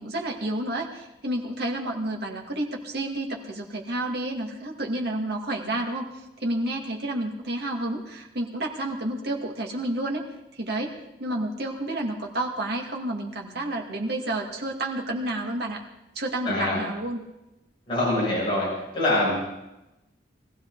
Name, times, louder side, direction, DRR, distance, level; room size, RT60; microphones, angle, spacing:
voice 1, 0.0-6.1 6.4-10.3 10.5-10.9 11.2-15.8 16.2-17.2, right 1 dB, 60° right, 0 dB, 2.3 m, -30 dB
voice 2, 16.4-16.8 17.9-18.7 18.9-19.4, left 1 dB, 30° left, -7 dB, 7.1 m, -24 dB
22.0 x 15.5 x 4.0 m, 0.92 s
head